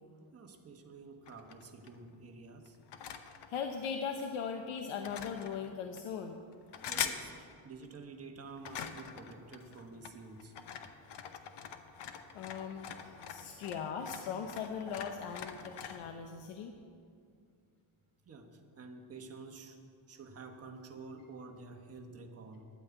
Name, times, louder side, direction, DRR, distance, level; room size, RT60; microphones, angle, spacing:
voice 1, 0.3-2.8 6.9-10.6 13.5-13.6 18.2-19.8 20.1-22.7, right 4 dB, 30° right, 4 dB, 1.1 m, -50 dB
sound 1, 1.3-2.1 2.7-4.3 4.8-6.1 6.5-7.2 7.5-7.9 8.4-16.0, left 8 dB, 55° left, 0.9 m, -43 dB
voice 2, 3.5-6.4 12.3-16.7, left 6 dB, 85° left, 5 dB, 0.9 m, -39 dB
11.0 x 8.8 x 8.1 m, 2.3 s
cardioid pair, 170°, 48 cm